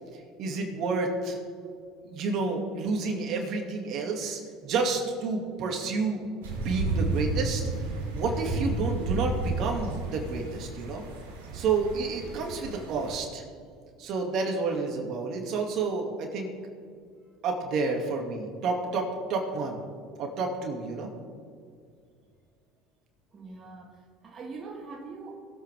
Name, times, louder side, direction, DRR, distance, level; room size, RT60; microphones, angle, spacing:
voice 1, 0.4-1.4 2.0-6.2 6.6-7.6 8.1-11.0 11.5-13.4 14.0-16.5 17.4-19.8 20.2-21.1, right 4 dB, 60° right, 2 dB, 2.4 m, -30 dB
sound 1, 6.4-13.1, right 3 dB, 90° right, 2.8 m, -32 dB
voice 2, 23.3-25.3, right 4 dB, 35° right, -1 dB, 1.8 m, -42 dB
21.0 x 8.3 x 3.6 m, 2.2 s
hypercardioid pair, 80°, 0 cm